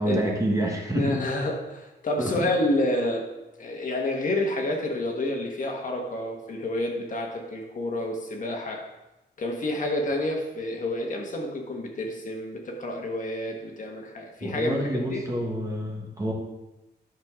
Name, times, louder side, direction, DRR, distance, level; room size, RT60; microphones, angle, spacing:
voice 1, 0.0-1.2 2.2-2.5 14.4-16.3, right 1 dB, 20° right, 0 dB, 1.3 m, -27 dB
voice 2, 0.9-3.2 3.6-8.8 9.4-15.2, left 1 dB, 45° left, 1 dB, 1.4 m, -29 dB
11.0 x 6.6 x 3.7 m, 0.98 s
wide cardioid pair, 165°, 18 cm